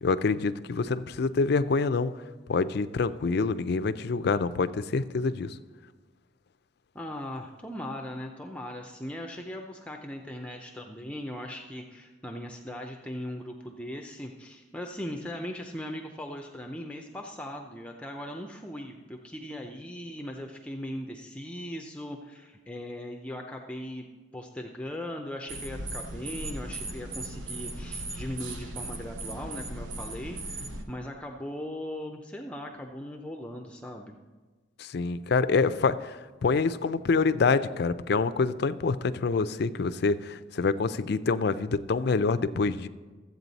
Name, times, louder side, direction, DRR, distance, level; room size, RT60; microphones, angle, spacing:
voice 1, 0.0-2.1 2.5-5.6 34.8-42.9, left 4 dB, 60° left, 13 dB, 0.4 m, -26 dB
voice 2, 6.9-34.2, left 1 dB, 5° left, 3 dB, 0.5 m, -39 dB
sound 1, 25.5-30.8, right 2 dB, 80° right, 1.0 m, -37 dB
13.5 x 8.2 x 4.0 m, 1.3 s
head